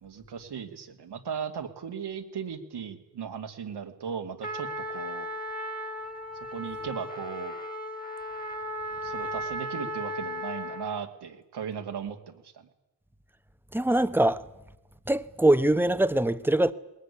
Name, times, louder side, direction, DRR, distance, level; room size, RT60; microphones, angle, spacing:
voice 1, 0.0-5.3 6.5-7.6 9.0-12.7, right 7 dB, 80° right, 2.4 m, -37 dB
Trumpet, 4.4-11.0, equal, 20° left, 2.4 m, -36 dB
voice 2, 13.7-14.4 15.1-16.7, right 1 dB, 5° right, 1.0 m, -23 dB
20.0 x 19.0 x 9.9 m
cardioid pair, 75°, 39 cm